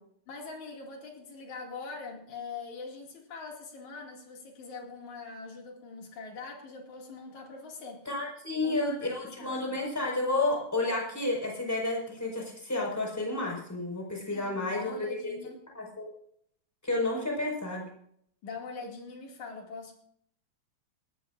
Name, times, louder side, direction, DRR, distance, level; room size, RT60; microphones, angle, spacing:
voice 1, 0.3-8.0 8.6-9.8 14.3-15.6 18.4-19.9, left 4 dB, 50° left, 1 dB, 3.3 m, -43 dB
voice 2, 8.1-15.4 15.7-16.1 16.8-17.8, left 2 dB, 5° left, -1 dB, 4.4 m, -31 dB
20.0 x 14.0 x 2.5 m, 0.68 s
omnidirectional pair, 4.9 m